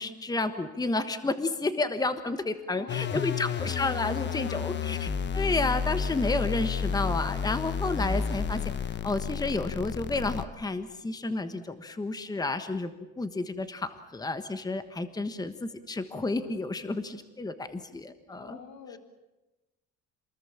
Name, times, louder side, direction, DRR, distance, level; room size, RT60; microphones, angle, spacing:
voice 1, 0.0-8.6 9.0-12.9 13.2-18.6, left 3 dB, 15° left, 10 dB, 1.3 m, -31 dB
voice 2, 2.8-3.7 4.3-5.0 18.3-19.0, left 6 dB, 70° left, 7 dB, 3.0 m, -46 dB
sound 1, 2.9-10.4, left 6 dB, 40° left, 1.2 m, -31 dB
27.5 x 21.0 x 7.3 m, 1.0 s
cardioid pair, 130°, 29 cm